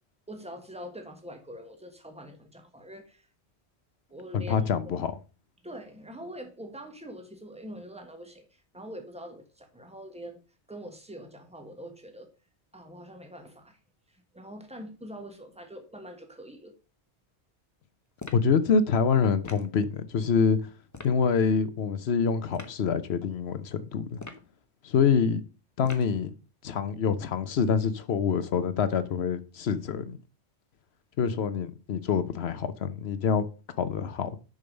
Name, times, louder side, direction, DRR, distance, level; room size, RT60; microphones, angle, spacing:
voice 1, 0.3-3.3 4.1-4.5 5.6-10.4 10.7-12.3 12.7-13.8 14.1-16.8, equal, 5° right, 1.4 m, -44 dB
voice 2, 4.3-5.1 18.3-20.6 21.0-24.2 24.8-25.4 25.8-26.3 26.6-30.2 31.2-33.5 33.8-34.3, left 6 dB, 70° left, 1.0 m, -26 dB
sound 1, 18.2-18.5 19.4-19.7 20.9-21.2 22.5-22.8 24.1-24.5 25.8-26.2, left 3 dB, 20° left, 0.8 m, -43 dB
6.8 x 5.2 x 5.2 m
omnidirectional pair, 1.1 m